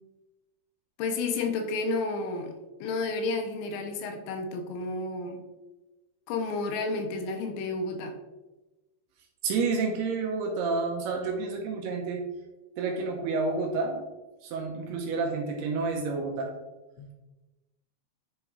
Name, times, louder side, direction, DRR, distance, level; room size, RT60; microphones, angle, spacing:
voice 1, 1.0-2.5 2.8-5.4 6.3-8.1 17.0-17.1, left 3 dB, 90° left, 5 dB, 3.0 m, -31 dB
voice 2, 9.4-12.2 12.8-14.0 14.4-16.5, right 4 dB, 75° right, 0 dB, 2.7 m, -29 dB
9.9 x 3.5 x 4.6 m, 1.1 s
omnidirectional pair, 5.2 m